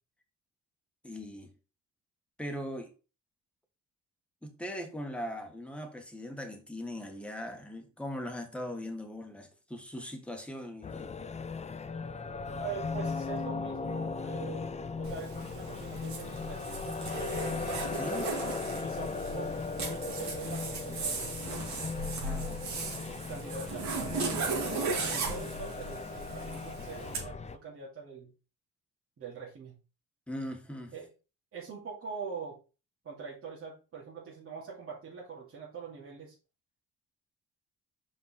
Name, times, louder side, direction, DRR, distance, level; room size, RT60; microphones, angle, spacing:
voice 1, 1.0-1.5 2.4-2.9 4.4-11.2 17.9-18.3 22.2-22.8 30.3-30.9, equal, 5° left, 1.7 m, -40 dB
sound 1, 10.8-27.6, left 4 dB, 20° left, 0.5 m, -37 dB
voice 2, 12.6-17.3 18.5-19.5 19.8-21.7 23.1-23.9 24.1-28.3 29.2-29.8 30.9-31.1 31.5-32.6 33.0-36.3, right 5 dB, 50° right, 2.5 m, -44 dB
Zipper (clothing), 15.0-27.2, right 3 dB, 65° right, 2.3 m, -37 dB
5.4 x 4.7 x 4.3 m
cardioid pair, 90°, 30 cm